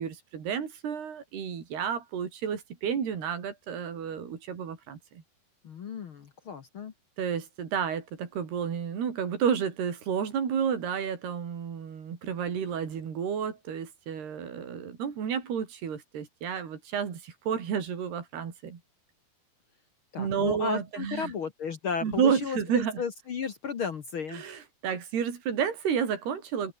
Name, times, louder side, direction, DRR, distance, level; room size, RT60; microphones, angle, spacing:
voice 1, 0.0-5.0 7.2-18.8 20.2-21.3 22.0-23.0 24.3-26.7, right 7 dB, 85° right, 5.8 m, -31 dB
voice 2, 5.6-6.9 20.1-24.4, left 6 dB, 65° left, 1.3 m, -34 dB
open air
omnidirectional pair, 4.5 m